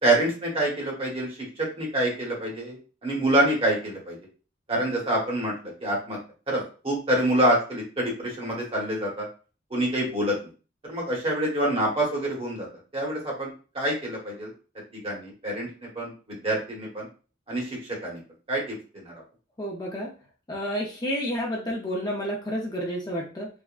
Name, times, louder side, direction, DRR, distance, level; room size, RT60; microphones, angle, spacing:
voice 1, 0.0-1.3 1.6-4.2 4.7-6.2 6.5-9.3 9.7-10.3 10.8-12.7 12.9-14.5 14.9-15.7 15.9-17.1 17.5-18.2 18.5-19.1, right 1 dB, 30° right, -3 dB, 1.1 m, -26 dB
voice 2, 19.6-20.1 20.5-23.5, equal, 20° left, -2 dB, 0.5 m, -30 dB
3.5 x 2.1 x 2.4 m, 0.36 s
head